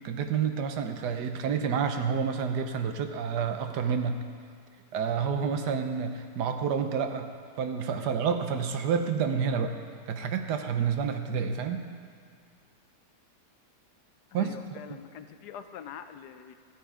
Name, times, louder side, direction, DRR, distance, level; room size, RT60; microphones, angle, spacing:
voice 1, 0.0-4.2 4.9-7.3 7.6-9.8 10.1-11.9 14.3-14.5, right 6 dB, 85° right, 7 dB, 1.4 m, -29 dB
voice 2, 14.3-16.5, left 8 dB, 80° left, 9 dB, 1.2 m, -44 dB
14.0 x 8.5 x 4.9 m, 2.2 s
omnidirectional pair, 1.7 m